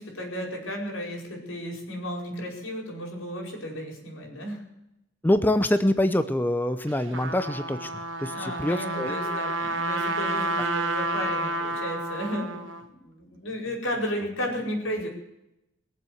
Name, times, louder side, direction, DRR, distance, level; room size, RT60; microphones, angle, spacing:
voice 1, 0.0-4.7 8.3-15.1, equal, 90° left, 1 dB, 5.1 m, -34 dB
voice 2, 5.2-7.9 8.2-9.2 10.6-10.7, left 1 dB, 10° left, 10 dB, 0.6 m, -25 dB
Trumpet, 6.9-12.8, right 1 dB, 75° right, 1.6 m, -30 dB
21.0 x 7.6 x 7.9 m, 0.86 s
head